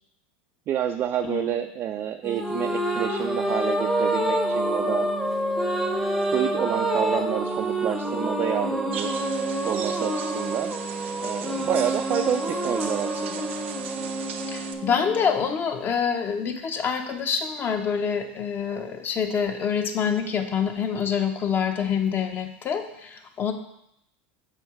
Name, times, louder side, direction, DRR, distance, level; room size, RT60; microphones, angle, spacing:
voice 1, 0.7-5.1 6.2-9.1 9.6-10.7 11.2-13.4, right 10 dB, 40° right, 5 dB, 0.4 m, -29 dB
sound 1, 2.2-15.8, right 1 dB, ahead, 0.8 m, -27 dB
sound 2, 8.9-14.7, right 7 dB, 85° right, 0.6 m, -38 dB
voice 2, 14.5-23.5, left 7 dB, 35° left, 6 dB, 0.9 m, -26 dB
6.2 x 4.5 x 4.7 m, 0.77 s
supercardioid pair, 110°, 6 cm